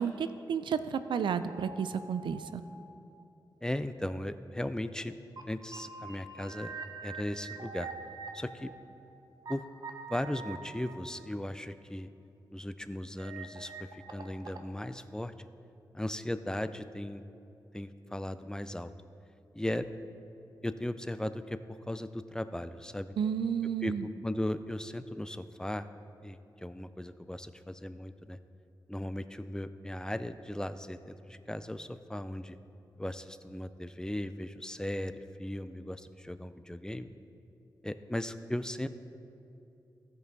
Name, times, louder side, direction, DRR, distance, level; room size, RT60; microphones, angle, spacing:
voice 1, 0.0-2.6 23.2-24.0, right 7 dB, 85° right, 12 dB, 0.4 m, -32 dB
sound 1, 1.4-2.5 3.1-3.2 5.0-5.1 5.4-5.5 5.7-9.5 9.8-11.7 13.2-14.7, right 4 dB, 60° right, 0.9 m, -45 dB
voice 2, 3.6-5.2 5.5-6.7 7.0-7.9 8.3-8.7 9.5-9.6 10.1-12.1 12.5-15.3 15.9-17.2 17.7-18.9 19.5-19.9 20.6-23.1 23.8-25.9 26.2-28.4 28.9-32.6 33.0-37.1 37.8-38.9, left 1 dB, 10° left, 12 dB, 0.4 m, -37 dB
16.0 x 5.4 x 4.0 m, 2.8 s
cardioid pair, 75°, 8 cm